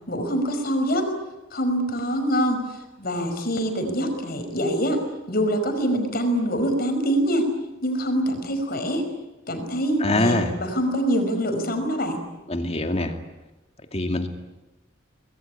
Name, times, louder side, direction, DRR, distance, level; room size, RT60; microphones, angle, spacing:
voice 1, 0.1-1.1 1.5-2.6 3.0-5.0 5.3-7.5 7.8-9.0 9.5-12.2, equal, 50° left, 6 dB, 5.4 m, -24 dB
voice 2, 10.0-10.5 12.5-13.1 13.9-14.3, left 1 dB, 30° left, 5 dB, 2.5 m, -23 dB
25.0 x 21.0 x 10.0 m, 1.0 s
head